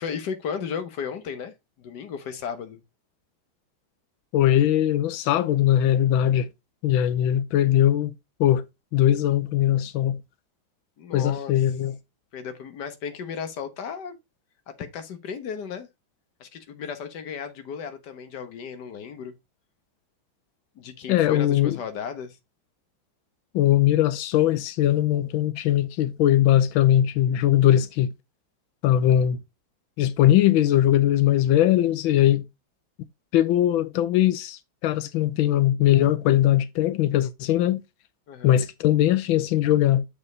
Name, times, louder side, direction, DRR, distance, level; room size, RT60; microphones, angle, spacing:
voice 1, 0.0-2.8 11.0-11.5 12.3-14.2 14.7-15.9 16.4-19.3 20.7-22.4 38.3-38.6, left 7 dB, 60° left, 1.7 m, -35 dB
voice 2, 4.3-6.5 6.8-8.1 8.4-8.6 8.9-10.2 11.1-11.9 21.1-21.8 23.5-28.1 28.8-29.4 30.0-32.4 33.3-37.8 38.4-40.0, left 12 dB, 90° left, 1.4 m, -20 dB
7.1 x 5.4 x 3.9 m
omnidirectional pair, 2.2 m